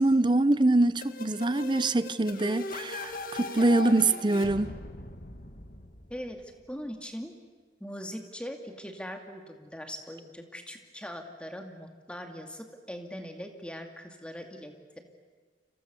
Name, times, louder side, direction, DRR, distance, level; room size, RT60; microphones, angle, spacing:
voice 1, 0.0-4.7, right 2 dB, 25° right, 0.7 m, -24 dB
sound 1, 1.0-6.7, left 2 dB, 55° left, 2.1 m, -39 dB
voice 2, 6.1-7.4 7.8-14.7, equal, 5° left, 2.4 m, -41 dB
30.0 x 26.5 x 7.0 m
head